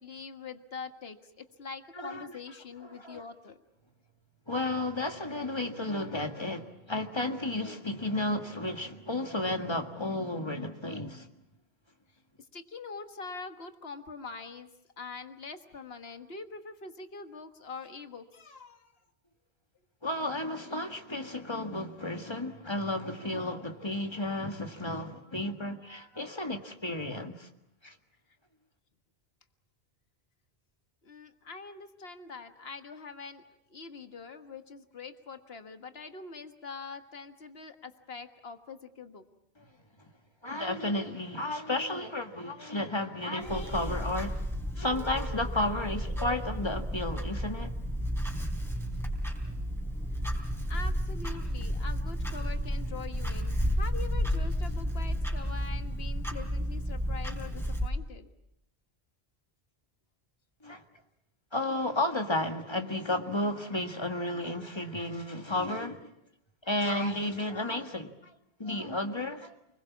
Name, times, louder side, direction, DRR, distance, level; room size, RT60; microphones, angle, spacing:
voice 1, 0.0-3.6 12.5-14.7 15.0-18.9 31.0-33.4 33.7-39.2 50.7-58.3, left 4 dB, 75° left, 1.8 m, -44 dB
voice 2, 2.0-2.3 2.8-3.2 4.5-11.3 20.0-27.5 27.8-28.0 39.6-39.7 40.4-44.4 44.8-47.7 60.6-60.8 61.5-66.1 66.6-68.3 68.6-69.6, left 1 dB, 25° left, 1.8 m, -33 dB
Clock, 43.4-57.9, equal, ahead, 3.8 m, -32 dB
29.5 x 21.5 x 7.3 m
omnidirectional pair, 1.0 m